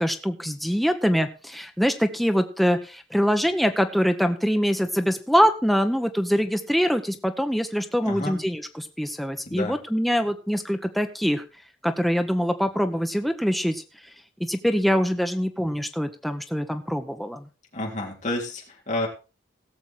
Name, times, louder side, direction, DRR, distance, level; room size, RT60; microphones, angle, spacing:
voice 1, 0.0-11.4 11.8-13.8 14.4-17.4, equal, ahead, 6 dB, 0.8 m, -24 dB
voice 2, 8.0-8.4 9.4-9.8 17.7-19.1, left 1 dB, 40° left, 0 dB, 3.4 m, -30 dB
17.0 x 7.1 x 4.4 m, 0.32 s
head